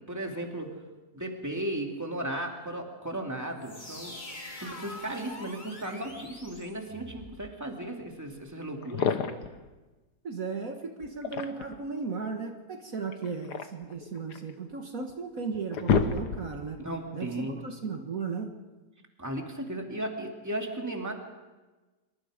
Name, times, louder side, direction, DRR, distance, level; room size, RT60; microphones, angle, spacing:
voice 1, 0.1-0.8 1.1-4.2 4.6-9.2 16.8-17.6 19.2-21.1, right 1 dB, 10° right, 2 dB, 2.7 m, -35 dB
sound 1, 3.6-7.4, left 1 dB, 30° left, 3.1 m, -44 dB
sound 2, 8.4-8.5 8.8-9.6 11.0-11.8 13.1-14.5 15.1-15.2 15.5-16.7, left 6 dB, 85° left, 1.8 m, -29 dB
voice 2, 10.2-16.8 17.1-18.5, right 5 dB, 55° right, 3 dB, 1.9 m, -36 dB
26.5 x 23.5 x 5.1 m, 1.2 s
omnidirectional pair, 1.7 m